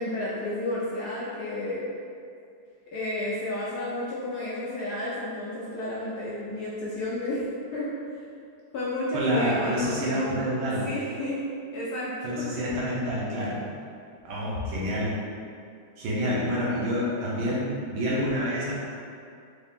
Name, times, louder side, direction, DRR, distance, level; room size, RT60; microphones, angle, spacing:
voice 1, 0.0-1.9 2.9-7.4 7.7-7.9 8.7-10.4 10.8-11.4 11.7-12.5, left 1 dB, 70° left, -7 dB, 1.0 m, -32 dB
voice 2, 9.1-10.9 12.2-13.7 14.3-15.2 16.0-18.7, equal, 80° right, -6 dB, 1.7 m, -27 dB
4.0 x 2.8 x 3.5 m, 2.4 s
omnidirectional pair, 2.2 m